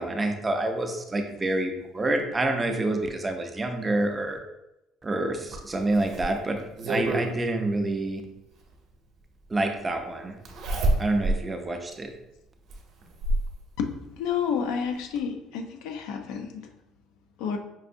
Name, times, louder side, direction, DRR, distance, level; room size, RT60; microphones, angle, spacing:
voice 1, 0.0-4.4 5.0-6.6 6.8-8.2 9.5-10.4 11.0-12.1, right 2 dB, 15° right, 5 dB, 0.4 m, -27 dB
Zipper (clothing), 5.5-7.3 8.7-8.8 10.4-11.4 11.9-12.0 12.7-13.5 14.7-14.8 15.2-15.3, right 1 dB, 55° right, 0.7 m, -27 dB
voice 2, 13.8-16.7 17.4-17.6, left 7 dB, 85° left, 5 dB, 0.5 m, -30 dB
5.3 x 2.5 x 2.6 m, 0.89 s
cardioid pair, 145°, 0 cm